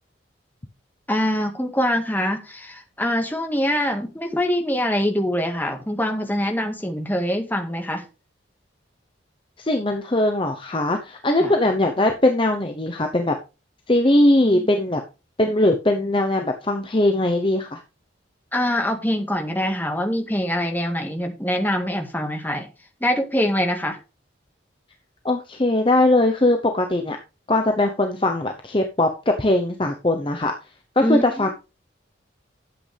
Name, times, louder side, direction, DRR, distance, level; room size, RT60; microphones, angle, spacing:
voice 1, 1.1-8.0 11.4-11.5 14.4-14.8 18.5-22.7 23.0-24.0 31.0-31.4, equal, 10° left, 3 dB, 1.8 m, -24 dB
voice 2, 9.6-13.4 13.9-15.0 15.4-17.8 25.2-27.2 27.5-30.5 31.0-31.5, left 1 dB, 25° left, 4 dB, 0.8 m, -20 dB
11.5 x 7.9 x 3.4 m, 0.30 s
head